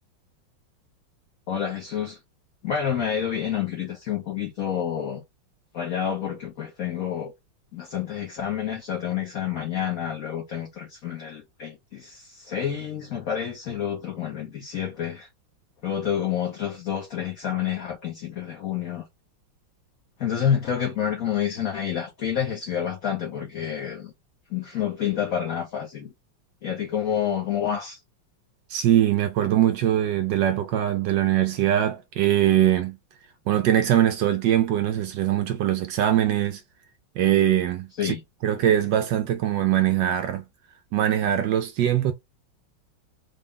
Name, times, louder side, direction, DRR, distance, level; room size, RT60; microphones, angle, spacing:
voice 1, 1.5-2.2 2.6-5.2 5.7-7.3 7.7-15.3 15.8-19.1 20.2-24.1 24.5-26.1 26.6-28.0 38.0-38.2, left 9 dB, 55° left, 1.1 m, -28 dB
voice 2, 28.7-33.0 33.5-36.6 37.2-38.1 38.4-40.4 40.9-42.1, right 11 dB, 75° right, 1.1 m, -22 dB
3.9 x 2.3 x 3.6 m
omnidirectional pair, 2.2 m